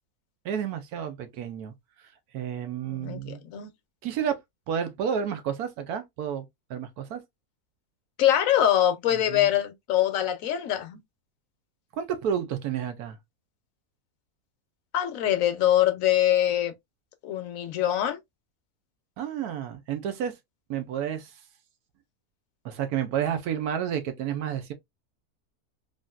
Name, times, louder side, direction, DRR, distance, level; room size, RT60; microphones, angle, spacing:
voice 1, 0.4-1.7 2.3-3.4 4.0-4.4 4.7-7.2 9.1-9.5 11.9-13.2 19.2-20.4 20.7-21.4 22.6-24.7, right 8 dB, 85° right, 1.2 m, -31 dB
voice 2, 2.9-3.7 8.2-11.0 14.9-16.7 17.2-18.2, left 11 dB, 70° left, 1.0 m, -24 dB
3.6 x 2.6 x 2.3 m
omnidirectional pair, 1.6 m